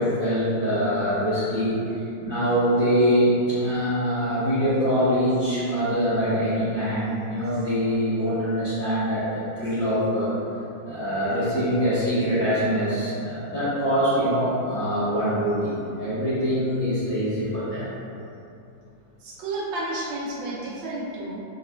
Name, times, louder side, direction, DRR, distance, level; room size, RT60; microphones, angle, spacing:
voice 1, 0.0-10.3 10.9-17.9, equal, 50° left, -14 dB, 1.5 m, -24 dB
voice 2, 19.2-21.4, right 2 dB, 90° right, -7 dB, 1.4 m, -31 dB
5.7 x 3.1 x 2.3 m, 2.8 s
omnidirectional pair, 1.9 m